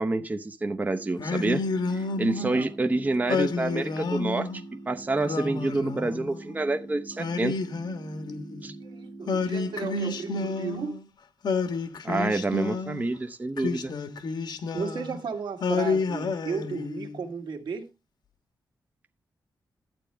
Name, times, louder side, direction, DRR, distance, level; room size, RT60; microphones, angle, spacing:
voice 1, 0.0-1.6 1.9-7.6 8.6-8.8 12.0-13.9, right 2 dB, 20° right, 0.7 m, -28 dB
sound 1, 0.7-10.8, right 2 dB, 55° right, 2.7 m, -44 dB
Singing, 1.2-2.7 3.3-4.6 5.2-6.5 7.2-8.7 9.3-11.0 11.4-13.1 13.6-15.2 15.6-17.2, left 4 dB, 70° left, 1.3 m, -30 dB
voice 2, 2.4-2.7 8.8-11.0 14.7-17.9, right 5 dB, 80° right, 1.8 m, -34 dB
12.0 x 8.8 x 3.3 m
wide cardioid pair, 125°, 8 cm